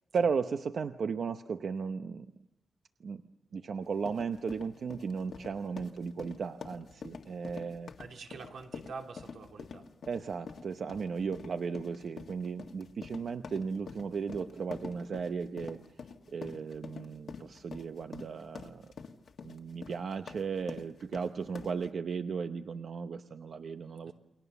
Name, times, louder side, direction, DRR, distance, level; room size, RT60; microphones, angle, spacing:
voice 1, 0.1-2.3 3.0-3.2 3.5-7.9 10.1-15.8 16.3-18.8 19.4-24.1, right 5 dB, 60° right, 7 dB, 0.8 m, -35 dB
sound 1, 3.8-21.9, left 5 dB, 65° left, 1.7 m, -47 dB
voice 2, 8.0-9.9 24.0-24.1, right 4 dB, 90° right, 2 dB, 3.1 m, -46 dB
29.5 x 22.0 x 7.0 m, 0.90 s
wide cardioid pair, 160°, 0 cm